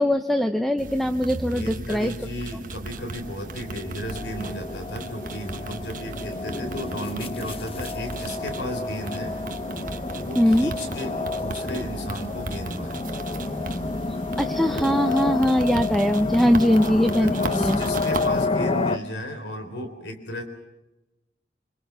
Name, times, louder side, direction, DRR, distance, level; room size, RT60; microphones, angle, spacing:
voice 1, 0.0-2.1 10.4-10.7 14.4-17.8, equal, ahead, 7 dB, 0.9 m, -21 dB
sound 1, 0.8-18.5, right 2 dB, 50° right, 1.2 m, -37 dB
voice 2, 1.5-9.4 10.2-13.2 16.5-16.9 17.2-20.4, equal, 80° left, 7 dB, 3.8 m, -34 dB
sound 2, 2.8-19.0, left 3 dB, 35° left, 0.8 m, -30 dB
26.5 x 26.5 x 5.8 m, 0.99 s
head